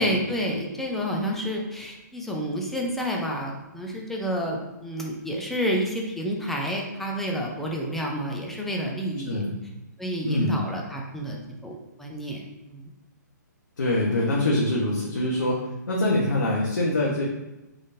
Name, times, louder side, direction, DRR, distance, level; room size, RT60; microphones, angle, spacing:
voice 1, 0.0-9.4 10.0-12.9, equal, ahead, -1 dB, 0.4 m, -29 dB
voice 2, 9.3-9.6 10.3-10.5 13.8-15.6 15.9-17.2, left 1 dB, 85° left, -4 dB, 0.9 m, -24 dB
3.9 x 3.5 x 2.6 m, 1.0 s
hypercardioid pair, 150°, 10 cm